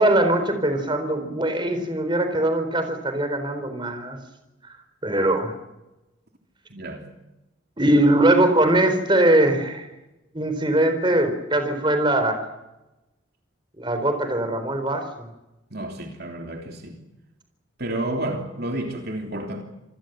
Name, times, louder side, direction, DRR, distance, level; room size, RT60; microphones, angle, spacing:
voice 1, 0.0-4.2 4.6-4.8 5.0-5.5 7.8-9.9 10.3-12.5 13.8-15.3, right 1 dB, 25° right, 4.1 m, -21 dB
voice 2, 6.7-7.0 15.7-17.0 17.8-19.6, right 1 dB, 50° right, 3.2 m, -30 dB
27.5 x 20.5 x 8.0 m
head